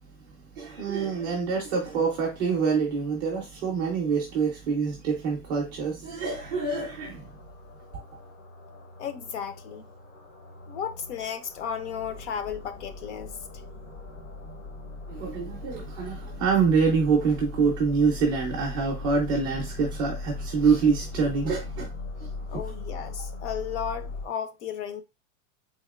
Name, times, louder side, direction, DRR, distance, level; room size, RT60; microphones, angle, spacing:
voice 1, 0.6-7.2 15.1-21.9 22.5-22.6, right 5 dB, 20° right, 0.4 m, -26 dB
sound 1, 6.3-24.3, left 3 dB, 75° left, 1.2 m, -39 dB
voice 2, 9.0-9.8 10.7-13.4 22.5-25.0, left 8 dB, 60° left, 0.6 m, -34 dB
3.6 x 3.5 x 2.3 m
supercardioid pair, 175°, 40 cm